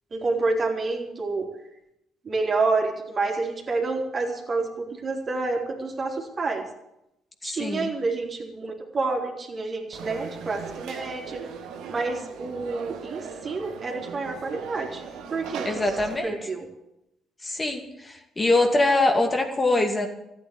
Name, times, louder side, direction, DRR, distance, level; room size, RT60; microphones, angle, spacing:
voice 1, 0.1-1.5 2.3-6.7 7.4-11.4 11.9-15.0 15.3-15.7 16.2-16.7, right 3 dB, 40° right, 1 dB, 3.5 m, -28 dB
voice 2, 7.4-7.9 15.6-16.5 17.4-20.1, left 2 dB, 25° left, 4 dB, 2.4 m, -23 dB
Conversation / Crowd, 9.9-16.2, right 6 dB, 70° right, 1.8 m, -38 dB
14.0 x 9.2 x 8.5 m, 0.85 s
hypercardioid pair, 50°, 0 cm